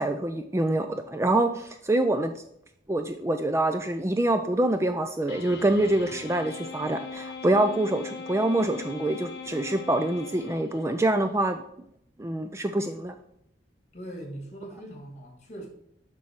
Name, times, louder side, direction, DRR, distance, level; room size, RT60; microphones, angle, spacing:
voice 1, 0.0-2.3 2.9-11.6 12.2-13.1, right 1 dB, 15° right, 0.4 m, -25 dB
sound 1, 5.3-11.1, left 4 dB, 65° left, 0.8 m, -40 dB
voice 2, 13.9-15.7, right 1 dB, 40° left, 2.3 m, -40 dB
7.2 x 6.1 x 4.7 m
head